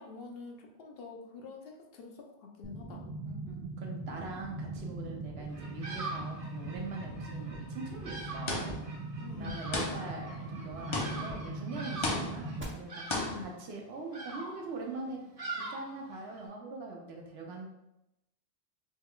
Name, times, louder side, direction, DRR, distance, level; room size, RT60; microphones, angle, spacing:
voice 1, 0.0-2.3 2.6-3.0 9.2-9.7 13.1-13.5, left 4 dB, 70° left, 1 dB, 0.8 m, -46 dB
sound 1, 2.6-12.6, right 2 dB, 20° right, 0.4 m, -41 dB
voice 2, 2.9-8.8 9.4-13.1 13.4-15.3 15.5-17.7, right 3 dB, 75° right, 1 dB, 0.9 m, -42 dB
Bird vocalization bird call bird song, 5.5-16.5, right 2 dB, 40° right, 0.8 m, -44 dB
sound 2, 8.5-9.0 9.7-10.3 10.9-11.5 12.0-12.6 13.1-13.5, left 2 dB, 40° left, 0.5 m, -34 dB
3.2 x 2.2 x 3.5 m, 0.90 s
omnidirectional pair, 1.1 m